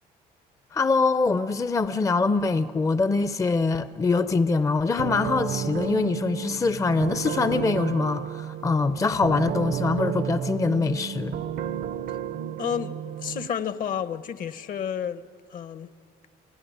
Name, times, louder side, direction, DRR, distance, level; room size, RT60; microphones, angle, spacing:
voice 1, 0.7-11.3, left 4 dB, 20° left, 0.5 m, -24 dB
sound 1, 5.0-13.5, right 9 dB, 60° right, 0.7 m, -32 dB
voice 2, 12.6-15.2 15.5-15.9, left 8 dB, 55° left, 1.0 m, -31 dB
28.5 x 17.0 x 9.3 m
cardioid pair, 110°, 17 cm